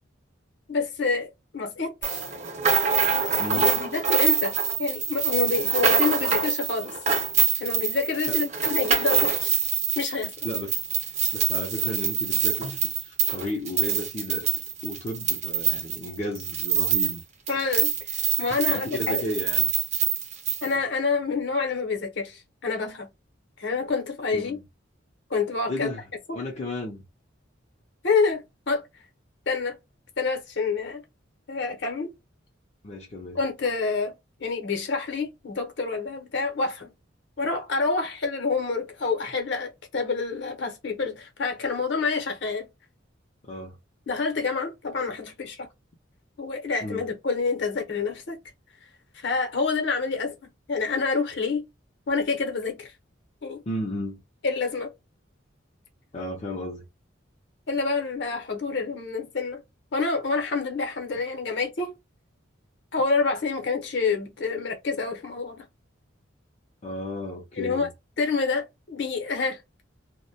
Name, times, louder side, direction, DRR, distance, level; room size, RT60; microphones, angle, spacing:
voice 1, 0.7-1.3 1.5-2.2 3.5-6.9 7.6-9.5 10.0-10.3 17.5-19.2 20.6-23.1 23.6-24.6 25.3-25.9 26.3-26.4 28.0-28.8 29.5-29.8 30.2-31.0 31.5-32.1 33.3-34.1 34.4-36.9 37.4-42.7 44.1-45.7 46.4-48.4 49.1-50.4 50.7-51.6 52.1-52.9 53.4-53.6 54.4-54.9 57.7-59.6 59.9-61.9 62.9-65.6 67.5-67.9 68.2-69.6, left 4 dB, 65° left, 0.8 m, -27 dB
sound 1, 2.0-17.2 17.5-20.7, right 7 dB, 35° right, 0.6 m, -25 dB
voice 2, 10.4-10.8 11.3-14.5 14.8-17.2 18.7-19.7 24.3-24.6 25.7-26.0 26.3-27.0 32.8-33.4 43.4-43.8 46.8-47.0 53.7-54.2 56.1-56.9 66.8-67.9, left 1 dB, 35° left, 0.5 m, -33 dB
2.2 x 2.1 x 2.7 m
head